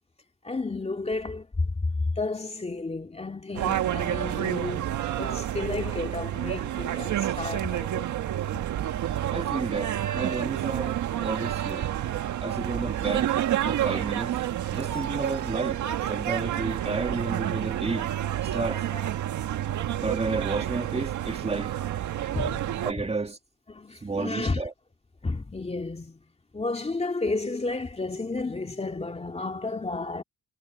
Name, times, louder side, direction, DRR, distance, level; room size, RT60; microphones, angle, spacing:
voice 1, 0.4-1.5 2.2-4.9 5.2-8.1 18.9-19.1 22.3-22.6 23.7-24.6 25.2-26.2 26.5-30.2, left 3 dB, 20° left, 2.5 m, -32 dB
sound 1, 3.6-22.9, right 11 dB, 75° right, 1.8 m, -29 dB
voice 2, 9.3-11.9 12.4-13.3 13.6-14.4 14.7-15.8 16.1-18.1 18.5-18.8 20.0-21.7 22.8-23.4 24.0-24.7, right 3 dB, 20° right, 2.4 m, -31 dB
cardioid pair, 90°, 30 cm